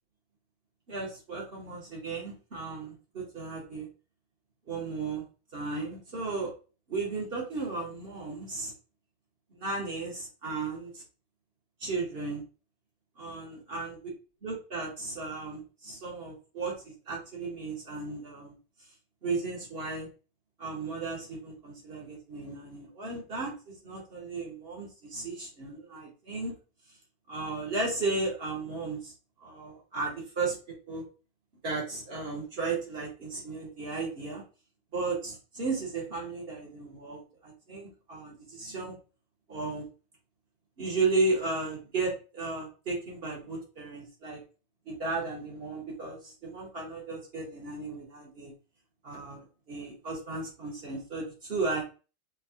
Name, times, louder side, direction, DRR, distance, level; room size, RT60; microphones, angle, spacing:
voice 1, 0.9-3.9 4.7-5.2 5.5-6.5 6.9-8.7 9.5-11.0 11.8-12.4 13.2-14.0 14.4-18.5 19.2-20.1 20.6-26.5 27.3-29.1 29.4-31.0 31.6-34.4 34.9-39.0 39.5-39.8 40.8-44.4 44.9-48.5 49.0-51.8, right 3 dB, 40° right, -2 dB, 1.2 m, -34 dB
4.6 x 2.3 x 2.8 m, 0.34 s
omnidirectional pair, 1.7 m